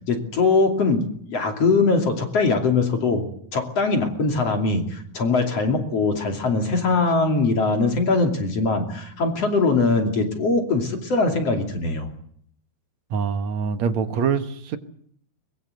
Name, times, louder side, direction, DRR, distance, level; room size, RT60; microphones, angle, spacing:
voice 1, 0.1-3.2 3.5-12.1, left 3 dB, 45° left, 4 dB, 3.6 m, -21 dB
voice 2, 13.1-14.8, right 6 dB, 60° right, 9 dB, 2.2 m, -24 dB
23.0 x 21.5 x 8.1 m, 0.64 s
omnidirectional pair, 4.4 m